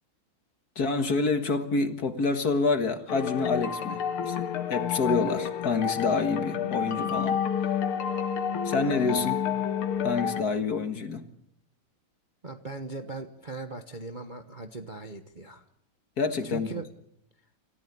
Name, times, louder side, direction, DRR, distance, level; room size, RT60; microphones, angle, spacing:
voice 1, 0.8-4.4 4.7-7.4 8.6-9.5 10.0-11.2 16.2-16.7, left 4 dB, 50° left, 8 dB, 2.0 m, -27 dB
sound 1, 3.1-10.4, left 8 dB, 90° left, 2.0 m, -29 dB
voice 2, 12.4-15.6 16.4-16.9, right 3 dB, 30° right, 6 dB, 0.9 m, -39 dB
28.0 x 15.0 x 8.4 m, 0.72 s
omnidirectional pair, 2.3 m